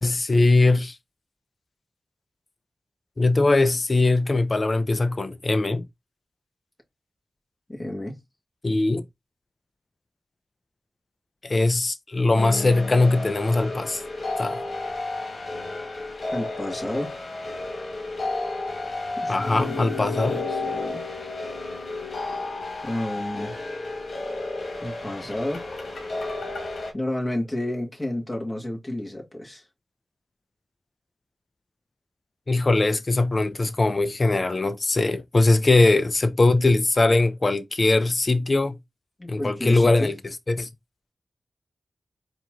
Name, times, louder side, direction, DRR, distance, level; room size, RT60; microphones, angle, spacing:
voice 1, 0.0-1.0 3.2-5.9 8.6-9.0 11.4-14.0 14.4-14.6 19.3-20.4 32.5-38.8 39.3-40.7, left 2 dB, 50° left, 0.7 m, -21 dB
voice 2, 7.7-8.2 16.3-17.1 19.2-19.7 20.3-21.0 22.8-23.5 24.8-25.7 26.9-29.6 39.2-40.1, left 1 dB, 25° left, 2.0 m, -31 dB
sound 1, 12.4-26.9, left 2 dB, 75° left, 1.5 m, -32 dB
4.4 x 3.0 x 3.6 m
cardioid pair, 45°, 0 cm